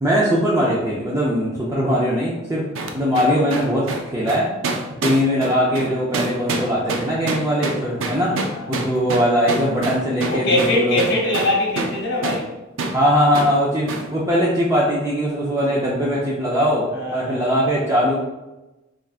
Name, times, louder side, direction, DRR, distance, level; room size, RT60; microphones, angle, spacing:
voice 1, 0.0-2.6 2.9-4.5 5.0-8.4 8.7-11.0 12.9-18.2, equal, 15° right, -6 dB, 0.5 m, -20 dB
sound 1, 2.7-12.0 12.2-12.4 12.8-13.0 13.3-13.5 13.9-14.1, right 3 dB, 70° right, 0.5 m, -26 dB
voice 2, 8.3-8.9 10.3-12.5 16.9-17.6, left 1 dB, 55° left, -2 dB, 1.0 m, -23 dB
3.7 x 3.4 x 2.4 m, 1.0 s
head